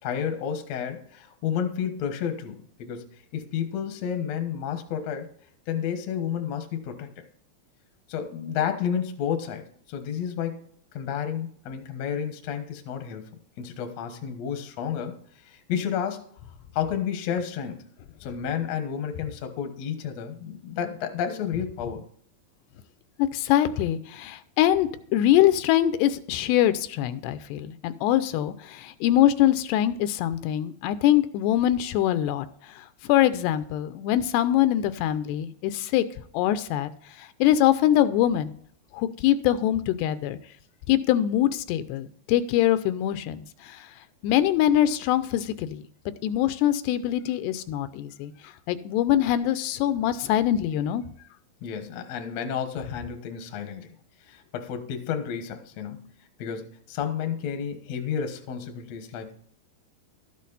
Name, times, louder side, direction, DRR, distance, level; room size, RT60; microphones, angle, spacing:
voice 1, 0.0-3.0 3.3-5.3 5.7-7.2 8.1-10.6 10.9-13.2 13.6-15.2 15.4-16.2 16.7-17.8 18.2-22.0 51.6-53.9 54.3-56.1 56.4-59.3, left 8 dB, 65° left, 6 dB, 1.7 m, -31 dB
voice 2, 23.2-32.5 32.8-36.0 36.3-36.9 37.2-38.6 38.9-40.4 40.9-43.9 44.2-45.8 46.2-48.3 48.7-51.0, left 12 dB, 85° left, 12 dB, 2.7 m, -23 dB
13.0 x 8.4 x 4.1 m, 0.63 s
omnidirectional pair, 4.8 m